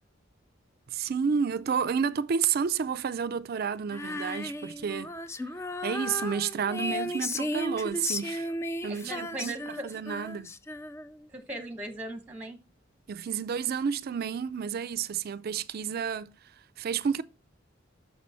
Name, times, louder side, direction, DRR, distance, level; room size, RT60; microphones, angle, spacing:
voice 1, 0.9-5.1 5.8-8.5 8.8-10.5 13.1-16.3 16.8-17.2, right 6 dB, 55° right, 0.4 m, -30 dB
Female singing, 3.9-11.3, left 1 dB, 15° left, 0.4 m, -35 dB
voice 2, 8.9-9.8 11.3-12.6, right 1 dB, 10° right, 1.1 m, -38 dB
6.7 x 5.4 x 4.3 m
head